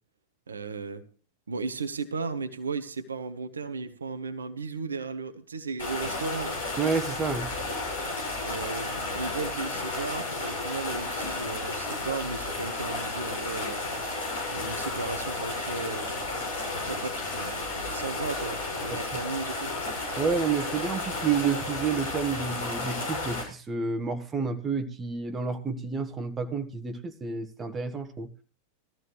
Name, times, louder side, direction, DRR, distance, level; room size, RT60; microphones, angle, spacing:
voice 1, 0.5-1.0 1.5-6.6 8.4-13.8 14.5-16.3 16.7-19.7, right 4 dB, 75° right, 9 dB, 1.1 m, -35 dB
sound 1, 5.8-23.4, left 2 dB, 65° left, 6.3 m, -33 dB
voice 2, 6.8-7.5 18.9-19.0 20.2-28.3, right 5 dB, 20° right, 7 dB, 1.4 m, -29 dB
19.5 x 14.0 x 3.2 m, 0.37 s
figure-of-eight pair, 90°, 0 cm